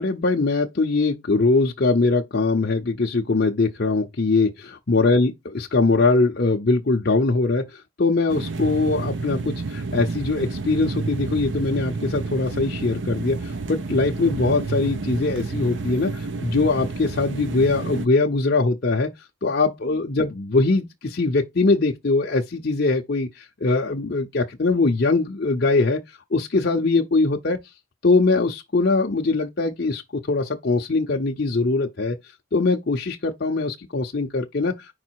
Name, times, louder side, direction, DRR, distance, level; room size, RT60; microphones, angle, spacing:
voice 1, 0.0-19.1 19.4-26.0 26.3-27.6 28.0-32.2 32.5-34.8, left 3 dB, 50° left, 0.7 m, -22 dB
sound 1, 8.3-18.1, right 3 dB, 60° right, 0.6 m, -30 dB
5.3 x 4.0 x 4.5 m
head